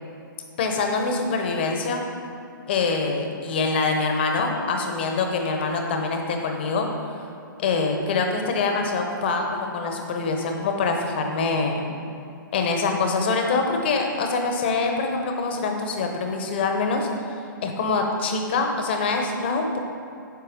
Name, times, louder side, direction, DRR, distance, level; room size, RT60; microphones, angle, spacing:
voice 1, 0.6-2.0 2.7-7.1 7.6-11.9 12.5-17.4 17.6-19.8, left 4 dB, 30° left, 3 dB, 0.9 m, -25 dB
9.5 x 6.5 x 5.2 m, 2.6 s
hypercardioid pair, 175°, 12 cm